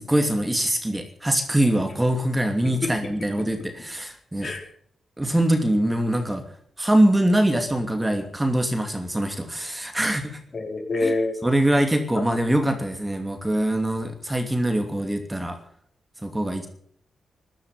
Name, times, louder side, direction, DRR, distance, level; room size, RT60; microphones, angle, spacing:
voice 1, 0.0-4.5 5.2-6.4 6.8-10.4 11.0-11.1 11.4-15.6 16.2-16.7, right 1 dB, 10° right, 5 dB, 2.7 m, -23 dB
voice 2, 10.5-11.4 12.1-12.5, left 3 dB, 45° left, 3 dB, 4.7 m, -27 dB
14.5 x 12.0 x 8.1 m, 0.62 s
cardioid pair, 95°, 0 cm